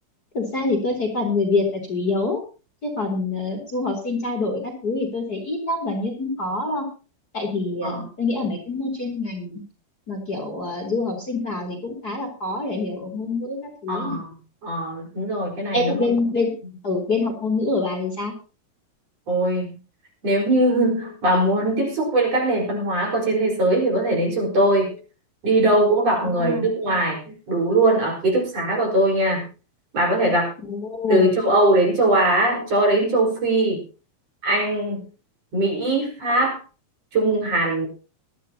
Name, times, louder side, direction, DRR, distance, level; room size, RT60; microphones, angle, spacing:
voice 1, 0.3-2.4 2.8-6.9 7.3-9.6 10.1-14.2 15.7-16.5 16.8-18.3 26.3-26.6 30.6-31.3, left 3 dB, 30° left, 2 dB, 3.3 m, -25 dB
voice 2, 13.9-14.3 14.6-16.1 19.3-19.8 20.2-25.0 25.4-29.5 29.9-30.5 31.1-33.8 34.4-35.0 35.5-36.6 37.1-37.9, right 1 dB, 45° right, 0 dB, 5.9 m, -21 dB
21.0 x 12.5 x 2.9 m, 0.34 s
omnidirectional pair, 4.2 m